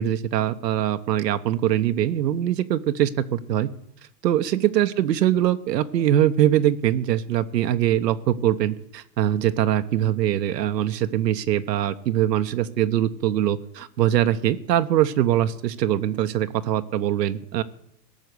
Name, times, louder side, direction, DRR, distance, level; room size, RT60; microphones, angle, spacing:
voice 1, 0.0-3.7 4.2-17.6, right 11 dB, 75° right, 9 dB, 0.9 m, -22 dB
17.5 x 6.5 x 8.1 m, 0.77 s
hypercardioid pair, 115°, 50 cm